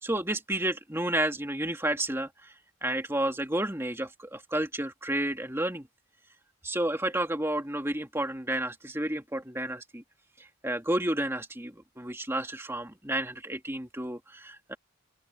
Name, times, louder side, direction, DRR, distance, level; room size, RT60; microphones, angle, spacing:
voice 1, 0.0-2.5 2.8-5.9 6.6-10.0 10.6-14.7, right 1 dB, 10° right, 2.3 m, -31 dB
open air
head